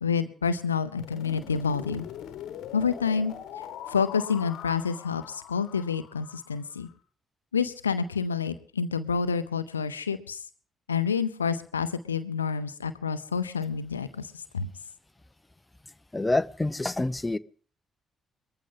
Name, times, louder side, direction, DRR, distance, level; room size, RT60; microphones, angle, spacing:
voice 1, 0.0-2.1 2.7-3.3 3.9-6.9 7.5-10.4 10.9-14.7, left 6 dB, 85° left, 13 dB, 0.6 m, -28 dB
sound 1, 1.0-6.9, left 9 dB, 60° left, 1.1 m, -42 dB
voice 2, 16.1-17.4, left 2 dB, 15° left, 14 dB, 0.7 m, -27 dB
20.5 x 14.5 x 3.8 m, 0.43 s
figure-of-eight pair, 40°, 0 cm